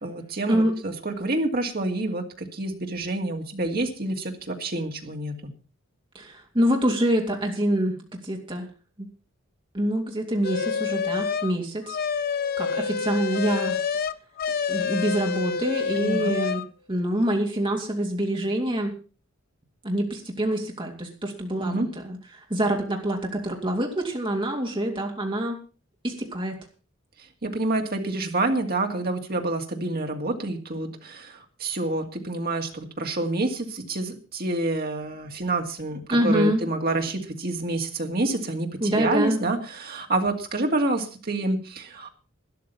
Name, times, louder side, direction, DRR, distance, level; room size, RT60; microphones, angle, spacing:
voice 1, 0.0-5.3 15.9-16.4 21.6-21.9 27.4-42.1, right 2 dB, 45° right, 3 dB, 2.3 m, -28 dB
voice 2, 6.1-8.7 9.0-9.1 9.7-12.0 12.6-13.8 14.7-16.6 16.9-18.9 19.8-25.6 26.0-26.6 36.1-36.6 38.8-39.4, right 1 dB, 25° right, 1 dB, 3.0 m, -26 dB
sound 1, 10.4-11.5 11.9-16.7, left 6 dB, 45° left, 0.6 m, -27 dB
13.0 x 11.0 x 5.6 m, 0.36 s
head